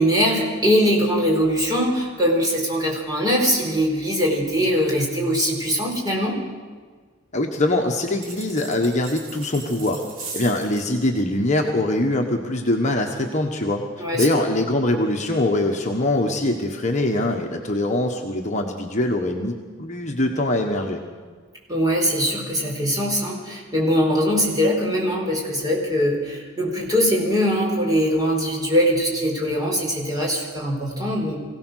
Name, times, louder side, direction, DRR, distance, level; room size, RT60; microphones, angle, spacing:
voice 1, 0.0-6.4 14.0-14.3 21.7-31.4, equal, 20° right, -2 dB, 4.5 m, -21 dB
voice 2, 7.3-10.0 10.3-13.8 14.1-21.0, left 1 dB, 35° left, 1 dB, 1.4 m, -23 dB
sound 1, 8.2-10.9, right 4 dB, 75° right, 3.6 m, -38 dB
24.0 x 17.0 x 6.5 m, 1.5 s
head